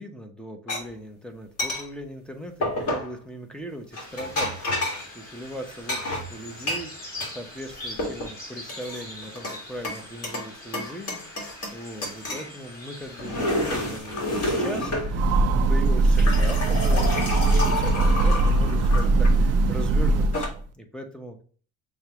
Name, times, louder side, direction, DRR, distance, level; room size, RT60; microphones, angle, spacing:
voice 1, 0.0-21.4, equal, ahead, 4 dB, 0.8 m, -39 dB
sound 1, 0.7-0.8 1.6-1.8 2.6-3.1 3.9-5.1 5.9-7.3 7.7-8.3 8.7-9.6 9.8-10.5 10.7-11.8 12.0-12.5 13.0-15.1 15.9-19.3 20.1-20.5, left 1 dB, 40° left, 1.9 m, -29 dB
sound 2, 3.9-14.0, left 1 dB, 25° left, 2.2 m, -43 dB
Train, 14.9-20.6, right 2 dB, 45° right, 0.5 m, -21 dB
6.4 x 2.4 x 2.9 m, 0.43 s
cardioid pair, 105°, 37 cm